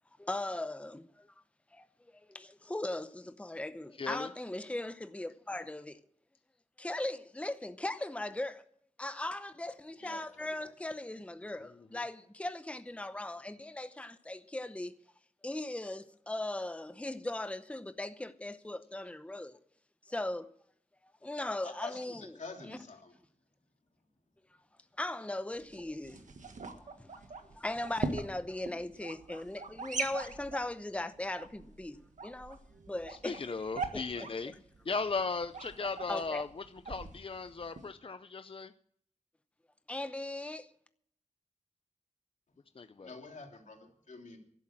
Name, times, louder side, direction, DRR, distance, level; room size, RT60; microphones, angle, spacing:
voice 1, 0.2-1.3 1.7-1.9 2.1-6.0 6.8-8.6 9.0-14.9 15.4-19.6 20.1-20.5 21.2-22.3 22.6-22.8 25.0-26.2 26.7-27.2 27.5-32.0 32.2-32.6 32.9-33.4 33.9-34.0 36.1-36.4 39.9-40.7, left 1 dB, 10° left, 0.7 m, -38 dB
voice 2, 4.0-4.3 11.6-11.7 33.1-34.6 34.8-38.7 42.8-43.1, left 4 dB, 45° left, 0.6 m, -37 dB
voice 3, 10.0-10.5 21.6-23.2 43.0-44.4, left 3 dB, 85° left, 3.3 m, -47 dB
sound 1, 25.5-37.9, right 4 dB, 90° right, 1.6 m, -42 dB
12.0 x 11.5 x 7.4 m
wide cardioid pair, 75°, 12 cm